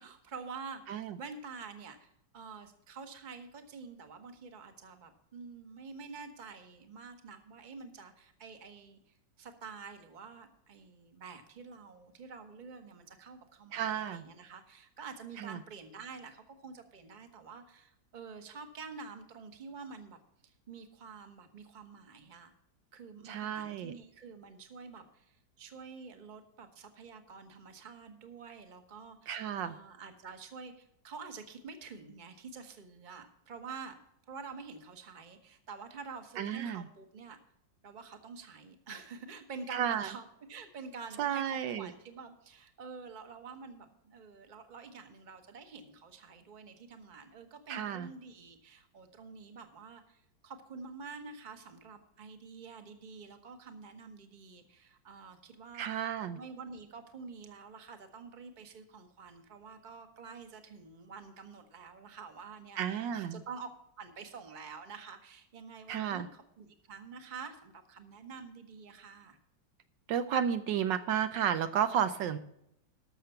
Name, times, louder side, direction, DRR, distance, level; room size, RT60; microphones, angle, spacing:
voice 1, 0.0-22.5 22.9-34.0 34.2-37.4 37.8-55.9 56.3-63.7 64.0-69.4, right 5 dB, 30° right, 7 dB, 1.1 m, -48 dB
voice 2, 13.7-14.2 15.4-15.6 23.2-23.9 29.3-29.7 36.4-36.9 39.7-40.1 41.2-41.9 47.7-48.1 55.8-56.4 62.8-63.4 65.9-66.3 70.1-72.4, right 9 dB, 75° right, 10 dB, 1.3 m, -32 dB
12.5 x 6.6 x 5.7 m, 0.77 s
omnidirectional pair, 2.0 m